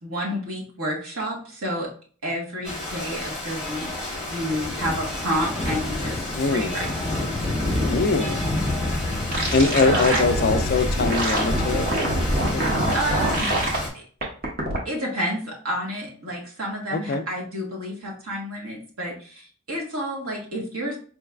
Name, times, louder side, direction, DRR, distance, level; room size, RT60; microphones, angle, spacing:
voice 1, 0.0-1.9 2.2-3.9 4.3-6.9 9.8-10.2 12.9-13.5 13.9-14.0 14.8-21.0, equal, 80° right, 1.5 m, -30 dB
Rain, 2.6-13.9, left 1 dB, 5° right, 0.9 m, -28 dB
voice 2, 6.4-6.7 7.9-8.4 9.5-11.9 12.5-12.6 12.9-13.0 16.9-17.3, left 3 dB, 45° left, 0.3 m, -22 dB
sound 1, 9.3-13.8 14.2-14.8, right 1 dB, 40° right, 0.9 m, -24 dB
4.6 x 3.1 x 2.3 m
head